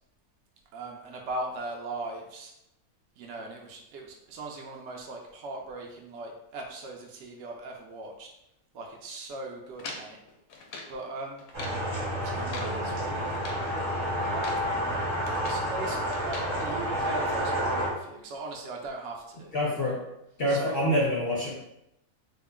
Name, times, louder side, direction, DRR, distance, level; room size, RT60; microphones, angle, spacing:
voice 1, 0.7-2.5 3.2-8.3 8.7-10.2 10.9-11.5 11.8-11.9 12.2-13.7 14.3-15.0 15.5-19.5 20.5-20.8, right 2 dB, 65° right, 0 dB, 0.7 m, -39 dB
sound 1, 9.8-11.0 11.4-11.8 12.3-12.8 13.2-13.7 14.2-14.7 15.0-15.7 16.1-16.5, left 3 dB, 75° left, 1.0 m, -42 dB
sound 2, 11.5-17.9, equal, 40° right, 1.0 m, -30 dB
voice 2, 19.5-20.0 20.4-21.5, equal, 55° left, -4 dB, 0.7 m, -26 dB
3.6 x 2.0 x 3.5 m, 0.83 s
omnidirectional pair, 1.6 m